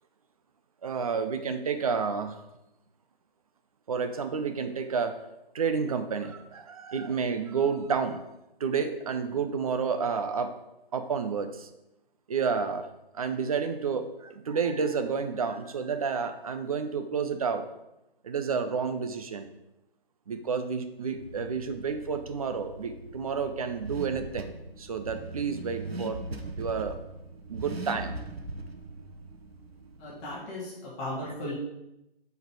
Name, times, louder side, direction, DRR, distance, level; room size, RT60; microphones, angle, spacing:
voice 1, 0.8-2.4 3.9-5.1 5.5-8.2 8.6-10.5 10.9-11.7 12.3-12.9 13.1-17.7 18.2-19.5 20.3-24.5 24.8-26.2 26.6-27.0 27.5-28.2, right 5 dB, 35° right, 8 dB, 0.7 m, -30 dB
Car / Accelerating revving vroom, 21.1-30.3, right 2 dB, 80° right, 1.0 m, -41 dB
voice 2, 30.0-31.5, left 1 dB, 20° left, -6 dB, 2.1 m, -36 dB
7.8 x 4.8 x 4.8 m, 0.89 s
figure-of-eight pair, 145°, 30 cm